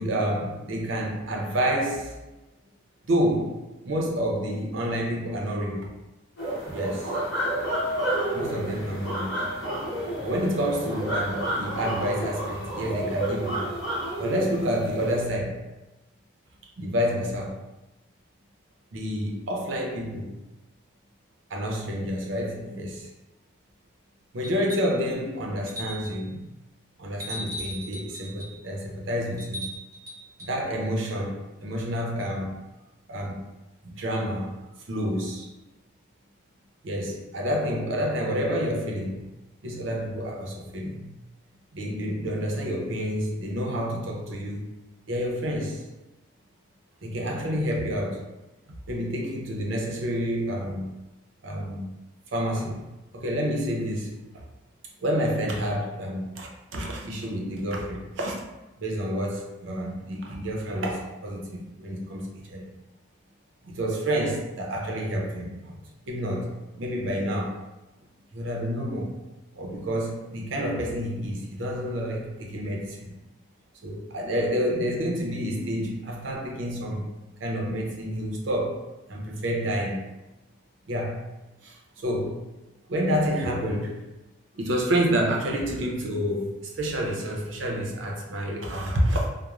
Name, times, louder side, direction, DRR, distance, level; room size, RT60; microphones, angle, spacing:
voice 1, 0.0-2.1 3.1-5.9 6.7-7.1 8.3-9.4 10.2-13.7 14.2-15.6 16.8-17.6 18.9-20.3 21.5-23.1 24.3-26.4 27.0-29.7 30.4-32.6 33.1-33.4 33.8-34.5 34.9-35.5 36.8-39.3 39.6-41.1 41.7-44.6 45.1-45.8 47.0-48.2 48.9-50.9 51.4-51.9 52.3-52.9 53.1-54.4 55.0-58.4 58.8-62.7 63.6-65.8 66.1-67.6 68.3-69.2 69.5-73.1 73.8-77.1 77.4-80.1 80.9-81.3 81.6-82.5 82.9-84.0 84.5-89.3, equal, 70° right, 0 dB, 0.5 m, -29 dB
sound 1, 6.4-15.2, right 1 dB, 65° left, 0.9 m, -30 dB
sound 2, 24.4-25.0 25.7-26.3 27.2-28.6 29.4-30.6 32.2-32.3, equal, 15° right, 0.4 m, -38 dB
2.9 x 2.0 x 2.4 m, 1.0 s
head